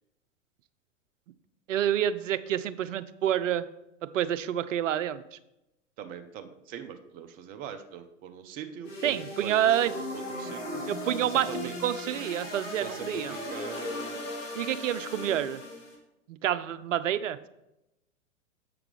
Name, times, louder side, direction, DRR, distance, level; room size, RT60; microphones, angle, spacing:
voice 1, 1.7-3.7 4.0-5.4 9.0-9.9 10.9-13.3 14.6-15.6 16.3-17.5, right 11 dB, 70° right, 14 dB, 0.5 m, -28 dB
voice 2, 6.0-10.8 11.2-11.8 12.8-14.2, right 8 dB, 20° right, 8 dB, 0.5 m, -42 dB
sound 1, 8.8-15.9, left 1 dB, 70° left, 2.4 m, -37 dB
7.5 x 5.8 x 3.4 m, 0.91 s
figure-of-eight pair, 100°, 39 cm